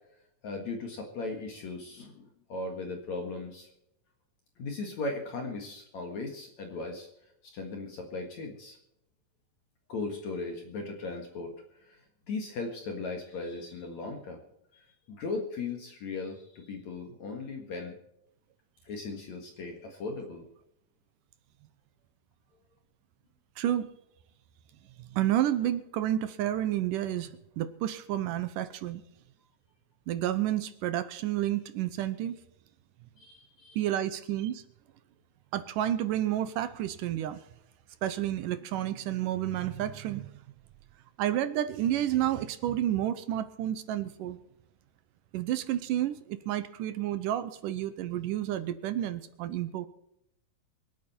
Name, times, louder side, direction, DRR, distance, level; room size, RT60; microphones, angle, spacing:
voice 1, 0.4-3.7 4.6-7.1 7.5-8.8 9.9-11.5 11.9-12.0 12.3-14.4 14.7-17.9 18.8-20.5 33.2-33.8, left 3 dB, 55° left, 3 dB, 2.8 m, -37 dB
voice 2, 23.6-23.9 25.0-29.0 30.1-32.4 33.8-34.6 35.5-37.4 38.0-40.4 41.2-44.4 45.3-49.9, right 12 dB, 75° right, 12 dB, 2.2 m, -30 dB
25.5 x 8.7 x 4.4 m, 0.80 s
omnidirectional pair, 4.2 m